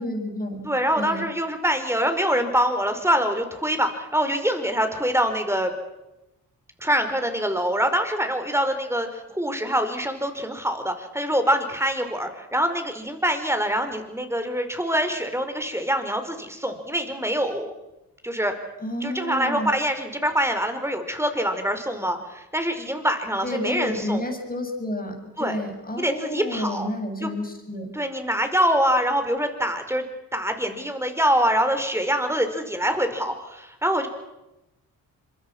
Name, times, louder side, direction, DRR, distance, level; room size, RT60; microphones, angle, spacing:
voice 1, 0.0-1.2 18.8-19.7 23.4-27.9, left 1 dB, 20° left, 3 dB, 7.2 m, -30 dB
voice 2, 0.6-5.7 6.8-17.7 18.2-18.5 19.0-24.2 25.4-25.6 26.0-26.9 27.2-27.3 27.9-30.0 30.3-34.1, equal, 5° right, 7 dB, 4.8 m, -24 dB
26.5 x 22.5 x 6.2 m, 0.94 s
supercardioid pair, 55°, 38 cm